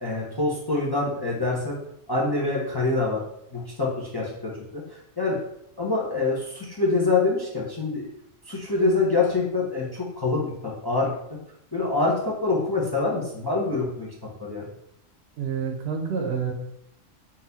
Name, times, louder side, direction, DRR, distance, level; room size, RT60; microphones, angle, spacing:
voice 1, 0.0-1.8 2.1-3.2 3.5-5.4 5.8-8.1 8.4-11.2 11.7-14.1 14.4-14.7, left 3 dB, 25° left, -4 dB, 0.6 m, -25 dB
voice 2, 15.4-16.5, right 6 dB, 60° right, 3 dB, 0.9 m, -28 dB
4.1 x 2.6 x 3.9 m, 0.76 s
omnidirectional pair, 1.3 m